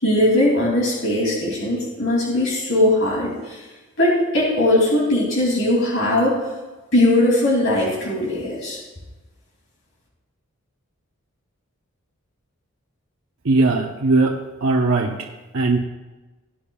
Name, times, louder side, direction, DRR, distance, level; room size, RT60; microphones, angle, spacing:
voice 1, 0.0-3.6 4.0-6.4 6.9-8.8, left 1 dB, 60° left, -3 dB, 2.8 m, -19 dB
voice 2, 13.4-14.3 14.6-15.1 15.5-15.8, right 3 dB, 70° right, -1 dB, 0.9 m, -18 dB
19.0 x 8.6 x 2.4 m, 1.2 s
head